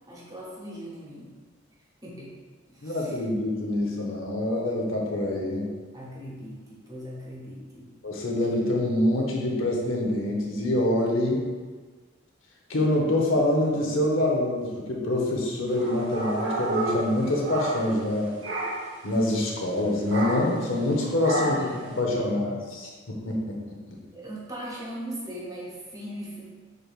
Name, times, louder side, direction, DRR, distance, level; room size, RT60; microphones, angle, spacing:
voice 1, 0.1-1.3 2.0-2.3 2.7-3.2 5.9-7.9 21.3-22.4 24.1-26.4, equal, 20° right, -5 dB, 0.9 m, -39 dB
voice 2, 2.8-5.7 8.0-11.5 12.7-18.3 19.0-23.6, left 1 dB, 85° left, -1 dB, 0.8 m, -25 dB
sound 1, 15.7-18.1 18.4-19.0 20.1-20.6 21.2-21.8, right 1 dB, 70° right, 0.8 m, -30 dB
6.2 x 3.4 x 2.4 m, 1.4 s
head